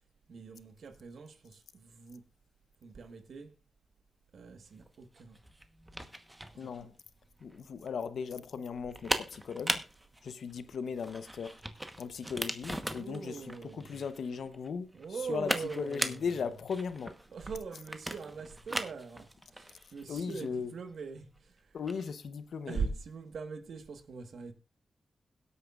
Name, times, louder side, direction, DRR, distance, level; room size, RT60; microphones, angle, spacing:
voice 1, 0.3-2.2 2.8-3.5 4.3-5.4 6.6-6.9 12.9-14.0 14.9-16.2 17.3-21.3 22.7-24.5, right 5 dB, 75° right, 1.4 m, -42 dB
sound 1, 4.7-22.1, right 1 dB, 10° right, 1.1 m, -40 dB
voice 2, 6.6-6.9 7.4-9.8 10.2-11.6 12.0-17.1 20.1-20.7 21.7-22.9, left 6 dB, 80° left, 0.8 m, -37 dB
21.0 x 8.4 x 2.4 m
cardioid pair, 70°, 0 cm